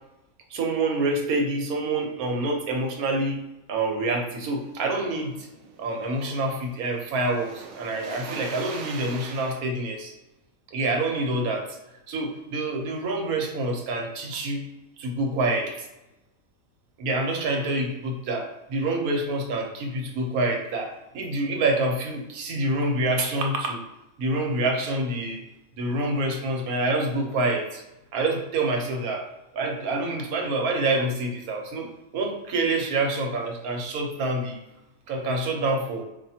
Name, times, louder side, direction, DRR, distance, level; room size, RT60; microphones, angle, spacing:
voice 1, 0.5-3.4 3.7-5.5 5.8-10.1 10.7-11.8 12.1-14.6 15.0-15.9 17.0-23.8 24.2-25.4 25.8-27.8 28.1-29.3 29.5-34.6 35.1-36.0, right 2 dB, 90° right, 2 dB, 1.3 m, -27 dB
sound 1, 4.5-9.6, right 5 dB, 65° right, 0.8 m, -43 dB
5.1 x 2.6 x 2.7 m, 0.94 s
omnidirectional pair, 1.5 m